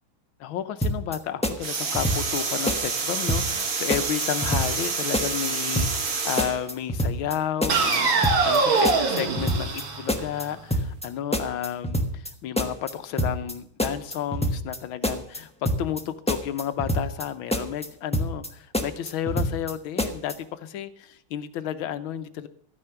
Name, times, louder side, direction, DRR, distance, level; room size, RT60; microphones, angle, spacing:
voice 1, 0.4-22.5, left 10 dB, 80° left, 11 dB, 1.6 m, -32 dB
sound 1, 0.8-1.2 1.4-2.4 2.7-3.0 3.3-3.6 3.9-4.9 5.1-5.5 5.7-6.1 6.4-7.3 7.6-8.0 8.2-8.6 8.8-9.8 10.1-10.4 10.7-11.1 11.3-12.3 12.6-12.9 13.2-13.5 13.8-14.8 15.0-15.4 15.6-16.0 16.3-17.2 17.5-17.9 18.1-18.5 18.7-19.7 20.0-20.3, equal, 5° left, 0.6 m, -26 dB
sound 2, 1.6-6.6 7.7-10.6, right 4 dB, 75° right, 2.5 m, -26 dB
13.0 x 9.9 x 5.8 m, 0.64 s
omnidirectional pair, 2.2 m